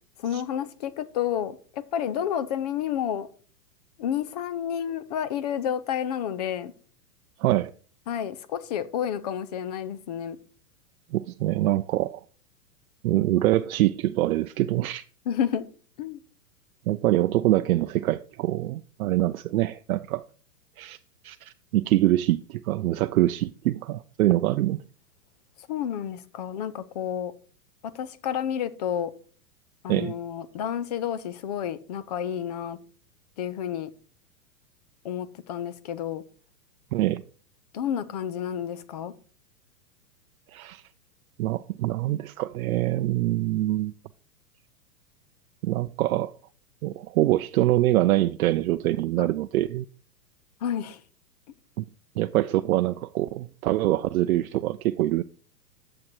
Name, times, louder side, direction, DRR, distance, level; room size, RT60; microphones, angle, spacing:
voice 1, 0.2-3.3 4.0-6.7 8.1-10.4 15.3-15.7 16.0-16.2 25.6-27.3 27.8-29.1 29.8-32.8 33.4-33.9 35.0-36.2 37.7-39.1 49.2-49.3 50.6-51.0, left 9 dB, 30° left, 0.4 m, -30 dB
voice 2, 7.4-7.7 11.1-12.2 13.0-15.0 16.9-20.2 20.8-21.0 21.2-24.8 29.9-30.1 36.9-37.2 40.5-40.8 41.4-43.9 45.6-46.3 46.8-49.8 51.8-51.9 52.2-55.2, right 15 dB, 65° right, 0.5 m, -24 dB
11.0 x 7.6 x 3.0 m
hypercardioid pair, 130°, 47 cm